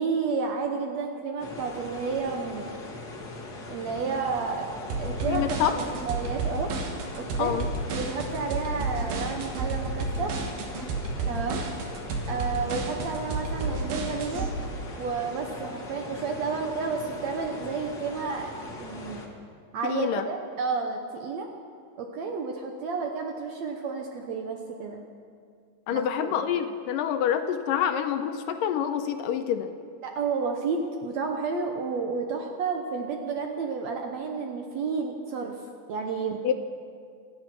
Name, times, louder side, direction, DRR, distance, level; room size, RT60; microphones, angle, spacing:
voice 1, 0.0-2.7 3.7-4.7 5.0-6.7 7.2-7.5 8.0-10.4 11.3-11.6 12.3-14.5 15.0-18.5 18.8-19.2 19.7-21.5 22.0-25.0 25.9-26.5 30.0-35.6 35.9-36.4, right 5 dB, 65° right, 3 dB, 1.8 m, -31 dB
sound 1, 1.4-19.3, left 2 dB, 40° left, 1.4 m, -40 dB
sound 2, 4.9-14.5, right 3 dB, 85° right, 3.3 m, -31 dB
voice 2, 5.3-5.8 7.4-7.7 19.8-20.3 25.9-29.7 36.4-36.5, left 9 dB, 80° left, 8 dB, 2.3 m, -27 dB
25.5 x 8.8 x 6.0 m, 2.2 s
omnidirectional pair, 4.1 m